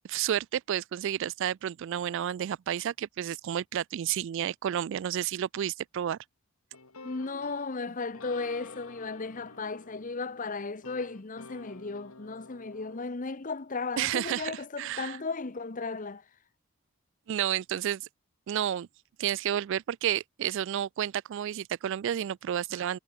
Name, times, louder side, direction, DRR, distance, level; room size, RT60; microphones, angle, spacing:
voice 1, 0.1-6.2 14.0-15.2 17.3-18.1 18.5-18.9 19.2-23.0, right 10 dB, 60° right, 0.3 m, -31 dB
sound 1, 6.7-13.0, left 3 dB, 85° left, 3.0 m, -50 dB
voice 2, 7.0-16.2, left 4 dB, 40° left, 0.9 m, -35 dB
head